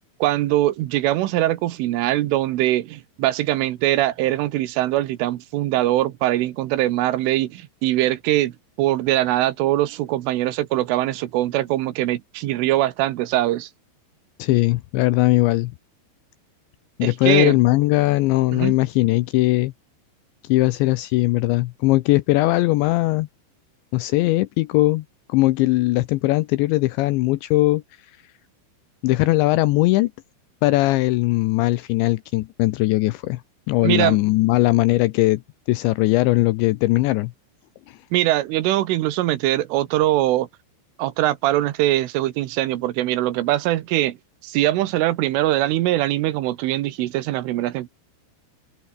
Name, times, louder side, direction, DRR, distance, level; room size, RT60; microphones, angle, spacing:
voice 1, 0.2-13.7 17.0-17.6 18.5-18.7 33.8-34.2 38.1-40.5 41.0-44.2 44.4-47.9, right 15 dB, 80° right, 3.7 m, -22 dB
voice 2, 14.4-15.7 17.0-19.7 20.5-23.3 23.9-25.0 25.3-27.8 29.0-30.1 30.6-33.4 33.7-35.4 35.7-37.3 37.9-38.0, left 19 dB, 90° left, 2.7 m, -19 dB
omnidirectional pair, 5.9 m